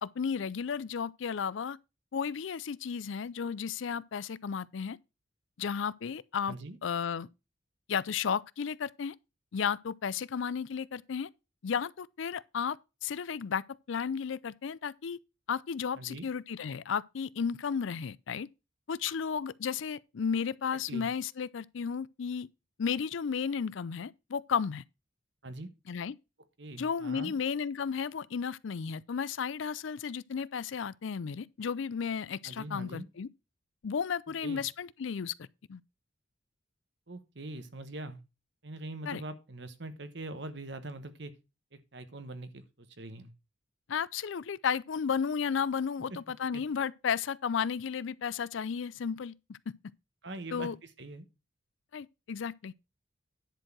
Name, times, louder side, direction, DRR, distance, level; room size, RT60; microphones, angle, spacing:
voice 1, 0.0-1.8 2.1-5.0 5.6-6.5 6.8-7.3 7.9-9.1 9.5-11.3 11.6-12.8 13.0-15.2 15.5-18.5 18.9-22.5 22.8-24.8 25.9-26.1 26.8-33.3 33.8-35.3 35.7-35.8 39.1-39.2 43.9-49.6 50.5-50.7 51.9-52.7, left 6 dB, 70° left, 0.4 m, -33 dB
voice 2, 6.5-6.8 15.9-16.3 20.9-21.1 25.4-25.7 26.6-27.3 32.4-33.1 34.4-34.6 37.1-38.2 38.6-41.3 41.7-43.3 46.5-46.6 50.2-51.3, right 2 dB, 55° right, 1.2 m, -42 dB
10.5 x 4.6 x 6.0 m
head